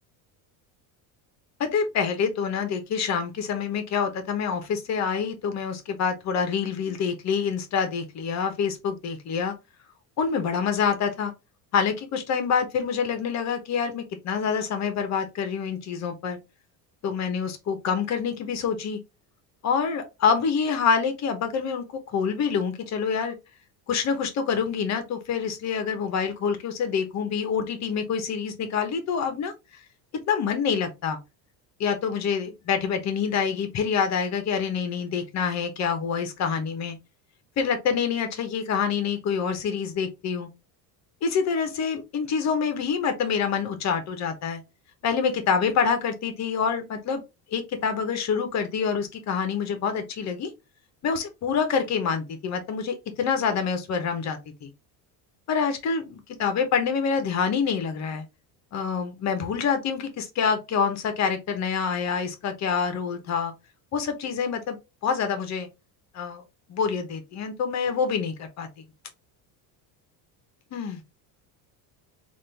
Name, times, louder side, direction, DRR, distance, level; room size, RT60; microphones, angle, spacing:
voice 1, 1.6-9.5 10.2-11.3 11.7-16.4 17.0-19.0 19.6-23.3 23.9-29.5 30.3-31.2 31.8-37.0 37.6-40.5 41.2-44.6 45.0-47.2 47.5-50.5 51.0-54.7 55.5-58.3 58.7-63.5 63.9-64.8 65.0-65.7 66.1-66.4 66.7-68.8 70.7-71.0, left 6 dB, 40° left, 0.9 m, -26 dB
3.7 x 2.6 x 3.2 m
cardioid pair, 140°, 42 cm